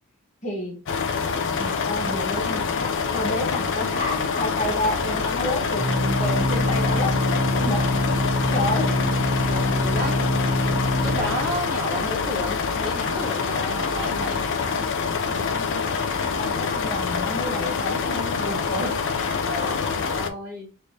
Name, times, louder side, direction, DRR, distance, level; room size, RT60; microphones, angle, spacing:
voice 1, 0.4-0.8 1.6-5.9 6.2-8.2 8.5-9.0 9.3-9.7 15.3-15.9 16.4-19.8, left 1 dB, 35° left, 0.9 m, -30 dB
sound 1, 0.9-20.3, left 5 dB, 55° left, 0.4 m, -26 dB
Organ, 4.4-14.5, equal, 40° right, 0.4 m, -26 dB
voice 2, 9.5-10.2 11.0-14.5 19.4-20.7, equal, 15° left, 1.3 m, -32 dB
3.2 x 3.1 x 2.6 m
head